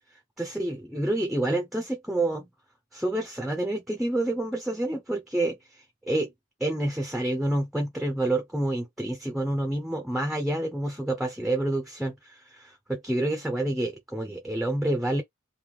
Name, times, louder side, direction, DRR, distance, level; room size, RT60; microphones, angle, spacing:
voice 1, 0.4-2.5 2.9-5.6 6.1-6.3 6.6-15.2, right 1 dB, ahead, 0.7 m, -28 dB
3.5 x 2.7 x 3.1 m
head